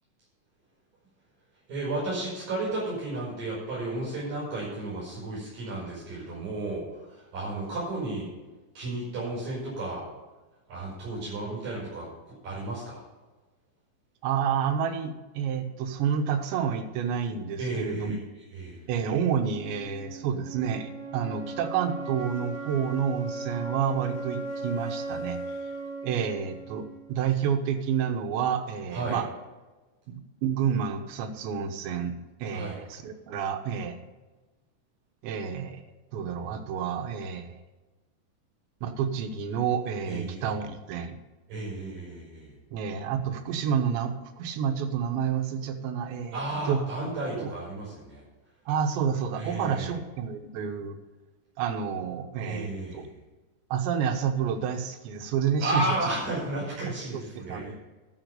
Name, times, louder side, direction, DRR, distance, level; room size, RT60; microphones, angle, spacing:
voice 1, 1.7-8.3 8.7-10.1 10.7-13.0 17.6-18.2 18.5-18.8 28.9-29.2 32.5-32.8 40.1-40.5 41.5-42.5 46.3-48.2 49.3-49.9 52.4-53.1 55.6-57.7, right 2 dB, 55° right, -5 dB, 6.8 m, -33 dB
voice 2, 14.2-18.2 18.9-25.4 26.0-29.3 30.1-32.2 32.4-34.1 35.2-35.8 36.1-37.6 38.8-41.2 42.7-46.4 46.7-46.8 47.4-47.5 48.7-51.0 51.6-52.7 52.9-53.0 53.7-55.9 57.1-57.7, right 7 dB, 85° right, 6 dB, 3.4 m, -29 dB
sound 1, 19.5-27.5, right 3 dB, 20° right, 1.3 m, -38 dB
12.5 x 7.1 x 6.7 m, 1.2 s
omnidirectional pair, 5.0 m